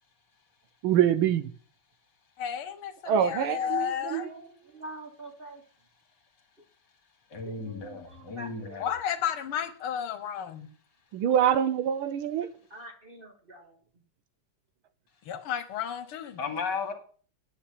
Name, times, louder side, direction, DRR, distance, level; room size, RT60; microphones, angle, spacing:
voice 1, 0.8-1.5 3.1-4.3 11.1-12.5, right 9 dB, 75° right, 1.5 m, -25 dB
voice 2, 2.4-4.3 8.8-10.7 15.3-16.4, left 9 dB, 75° left, 1.9 m, -32 dB
voice 3, 3.9-5.6 7.4-8.9 12.7-13.8, right 2 dB, 30° right, 1.4 m, -45 dB
voice 4, 7.3-8.9 16.4-16.9, left 5 dB, 50° left, 2.5 m, -34 dB
9.6 x 6.3 x 8.5 m
omnidirectional pair, 2.4 m